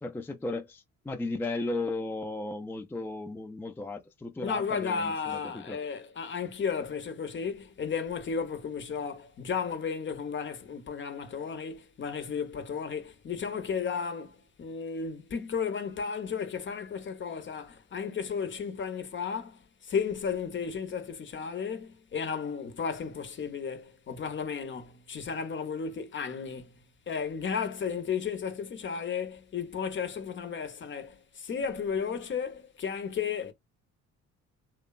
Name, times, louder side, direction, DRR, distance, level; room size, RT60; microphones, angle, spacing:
voice 1, 0.0-5.8, left 2 dB, 5° left, 0.4 m, -35 dB
voice 2, 4.4-26.8 27.1-33.5, left 6 dB, 40° left, 0.7 m, -34 dB
3.0 x 2.0 x 2.3 m
cardioid pair, 90°, 30 cm